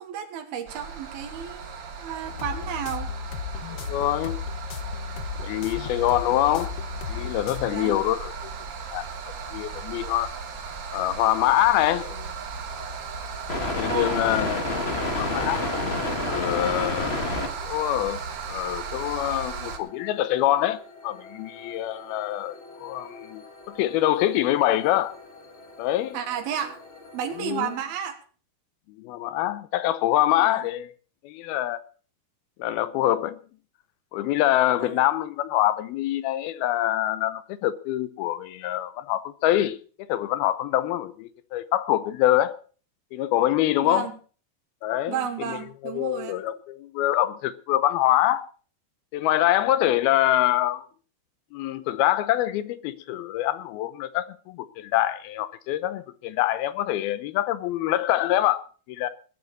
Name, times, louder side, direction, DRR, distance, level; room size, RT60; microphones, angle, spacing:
voice 1, 0.0-3.1 7.6-7.9 13.9-14.2 26.1-26.8 27.1-28.2 30.4-30.7 34.8-35.0 43.8-44.1 45.1-46.4, right 9 dB, 80° right, 3.3 m, -32 dB
sound 1, 0.7-19.8, right 5 dB, 50° right, 1.4 m, -36 dB
sound 2, 2.2-7.7, left 6 dB, 65° left, 1.8 m, -35 dB
voice 2, 3.7-4.4 5.4-6.7 7.1-8.5 8.9-9.1 9.5-10.3 10.9-12.3 13.8-14.7 15.2-15.6 16.3-17.2 17.6-18.2 18.5-25.2 25.8-26.2 27.4-27.8 29.0-30.9 31.2-31.8 32.6-33.4 34.1-42.6 43.1-44.1 44.8-45.6 45.8-48.5 49.1-50.9 51.5-59.1, left 14 dB, 85° left, 2.7 m, -25 dB
sound 3, 12.7-27.8, left 2 dB, 40° left, 0.8 m, -33 dB
20.5 x 10.5 x 4.1 m
omnidirectional pair, 4.3 m